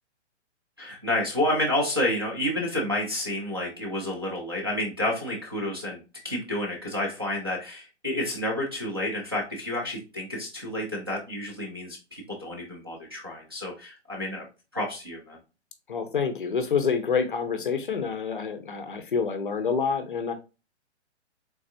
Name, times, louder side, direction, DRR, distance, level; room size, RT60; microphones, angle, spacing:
voice 1, 0.8-6.0 6.2-14.5 14.7-15.4, left 1 dB, 20° right, -4 dB, 0.4 m, -30 dB
voice 2, 15.9-20.3, left 6 dB, 45° left, 7 dB, 0.5 m, -27 dB
3.5 x 3.2 x 2.6 m, 0.30 s
hypercardioid pair, 175°, 36 cm